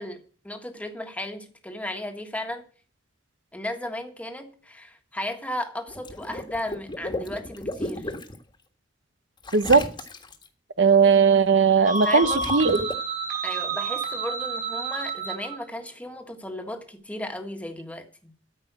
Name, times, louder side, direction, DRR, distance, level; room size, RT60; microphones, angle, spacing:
voice 1, 0.0-2.6 3.5-8.1 12.0-12.7 13.4-18.3, left 1 dB, 10° left, 1.5 m, -35 dB
Water / Liquid, 5.9-8.4 9.4-10.5 12.0-12.9, left 1 dB, 25° left, 1.6 m, -34 dB
voice 2, 10.8-12.8, right 5 dB, 80° right, 0.9 m, -18 dB
sound 1, 11.8-15.6, right 4 dB, 50° right, 3.6 m, -29 dB
13.5 x 5.4 x 8.1 m
head